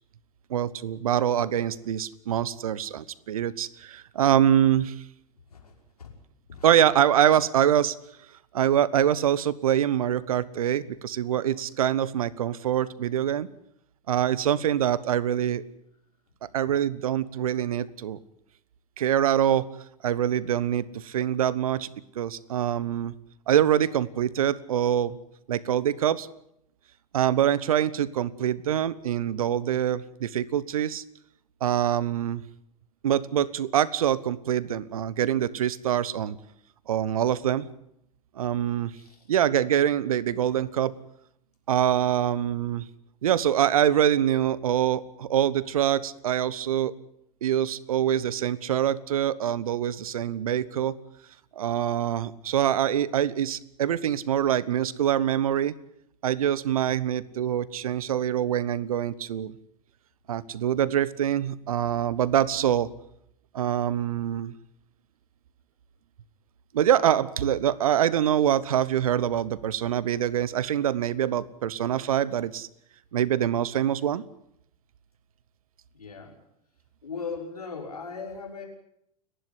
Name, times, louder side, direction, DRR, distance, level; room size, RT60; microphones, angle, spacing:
voice 1, 0.5-4.9 6.6-8.0 8.5-13.5 14.1-15.6 16.4-18.2 19.0-19.7 20.0-21.9 22.1-23.1 23.5-25.2 25.5-26.3 27.1-31.0 31.6-32.4 33.0-36.4 36.9-37.7 38.4-38.9 39.3-40.9 41.7-42.9 43.2-46.9 47.4-51.0 51.6-55.7 56.2-59.6 60.3-62.9 63.5-64.5 66.7-72.7 73.1-74.2, right 10 dB, 70° right, 20 dB, 1.1 m, -25 dB
voice 2, 5.5-6.1 6.5-6.7 16.4-16.5 39.0-39.3 75.9-76.4 77.0-78.6, left 5 dB, 80° left, 2 dB, 5.7 m, -38 dB
30.0 x 11.5 x 9.8 m, 0.75 s
figure-of-eight pair, 90°, 19 cm